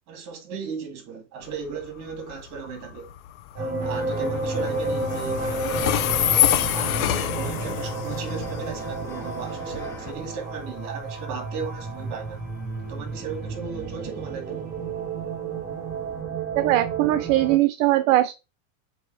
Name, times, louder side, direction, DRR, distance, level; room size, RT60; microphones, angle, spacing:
voice 1, 0.1-3.1 3.5-12.4 12.8-14.6, right 5 dB, 45° right, 2.3 m, -36 dB
Train, 1.4-16.2, left 12 dB, 85° left, 0.9 m, -29 dB
sound 1, 3.6-17.6, right 4 dB, 25° right, 4.3 m, -31 dB
sound 2, 3.8-10.1, left 5 dB, 5° left, 0.5 m, -41 dB
voice 2, 16.6-18.3, right 15 dB, 65° right, 0.6 m, -20 dB
7.7 x 2.8 x 4.8 m
supercardioid pair, 155°, 41 cm